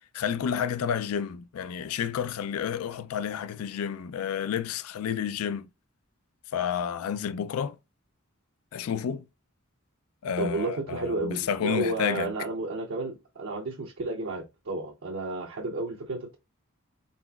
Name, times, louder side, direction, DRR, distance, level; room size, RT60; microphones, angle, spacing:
voice 1, 0.1-5.6 6.5-7.7 8.7-9.2 10.2-12.3, left 8 dB, 80° left, 0.3 m, -30 dB
voice 2, 10.4-16.4, right 2 dB, 60° right, 0.6 m, -32 dB
4.1 x 3.8 x 2.3 m
head